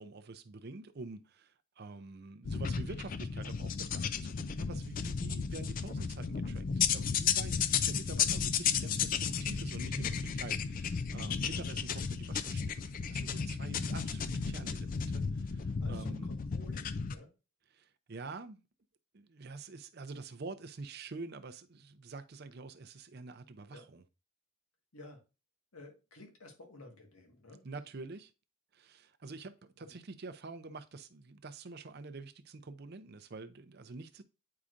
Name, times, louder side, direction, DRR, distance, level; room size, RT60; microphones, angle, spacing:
voice 1, 0.0-16.3 17.7-18.6 19.1-24.0 27.6-28.3 28.7-34.2, right 3 dB, 45° right, 0.5 m, -47 dB
sound 1, 2.4-17.2, left 6 dB, 40° left, 0.3 m, -34 dB
voice 2, 15.8-17.3 23.7-23.9 24.9-25.2 25.7-27.6 29.9-30.0, left 2 dB, 85° left, 1.7 m, -53 dB
8.6 x 4.7 x 2.5 m
head